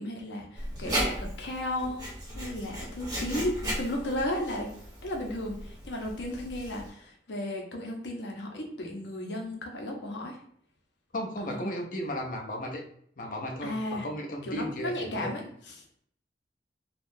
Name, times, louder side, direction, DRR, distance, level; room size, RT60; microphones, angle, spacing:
voice 1, 0.0-2.0 2.3-4.7 5.0-10.4 11.4-11.7 13.6-14.1 14.4-15.8, left 1 dB, 80° left, 1 dB, 0.7 m, -34 dB
Writing, 0.5-6.9, right 1 dB, 20° right, 1.0 m, -36 dB
voice 2, 11.1-12.8 13.2-15.3, equal, 50° left, 1 dB, 0.5 m, -35 dB
3.6 x 2.3 x 2.6 m, 0.64 s
head